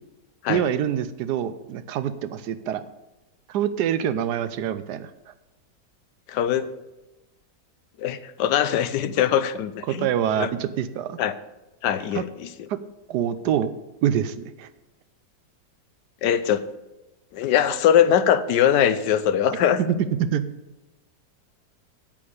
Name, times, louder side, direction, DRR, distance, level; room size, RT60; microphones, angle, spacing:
voice 1, 0.5-2.8 3.5-5.1 9.9-11.2 12.1-12.2 12.7-12.8 13.1-13.7 14.0-14.7 19.8-20.4, right 9 dB, 75° right, 13 dB, 1.2 m, -25 dB
voice 2, 6.3-6.7 8.0-10.1 10.4-10.5 11.2-11.4 11.8-12.5 16.2-16.6 17.3-19.8, left 9 dB, 80° left, 13 dB, 1.2 m, -21 dB
8.8 x 8.5 x 5.0 m, 1.0 s
omnidirectional pair, 1.9 m